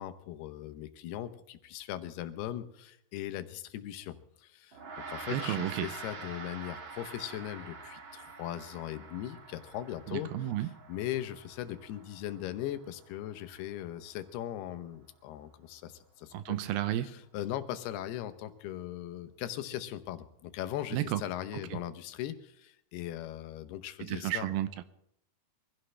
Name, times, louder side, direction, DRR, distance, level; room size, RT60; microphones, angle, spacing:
voice 1, 0.0-4.8 5.1-16.6 17.0-24.5, left 12 dB, 85° left, 10 dB, 2.9 m, -39 dB
Gong, 4.7-14.3, right 4 dB, 55° right, 1.4 m, -46 dB
voice 2, 5.3-5.9 10.1-10.7 16.3-17.1 20.9-21.2 21.7-21.8 24.0-24.8, right 12 dB, 80° right, 12 dB, 2.5 m, -32 dB
24.0 x 15.5 x 3.3 m, 0.73 s
omnidirectional pair, 4.5 m